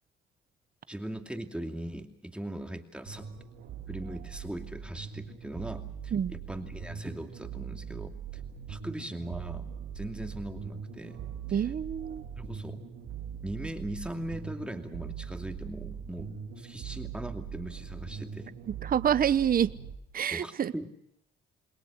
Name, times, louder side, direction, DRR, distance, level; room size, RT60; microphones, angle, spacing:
voice 1, 0.9-3.3 3.9-8.4 8.7-9.7 9.9-11.2 11.5-11.7 12.4-12.8 13.4-18.5 20.3-20.9, right 1 dB, 5° right, 2.6 m, -39 dB
sound 1, 3.1-19.9, right 7 dB, 85° right, 3.2 m, -41 dB
voice 2, 11.5-12.2 18.8-19.7 20.1-20.7, right 9 dB, 45° right, 1.0 m, -27 dB
28.5 x 21.0 x 6.4 m
cardioid pair, 90°, 20 cm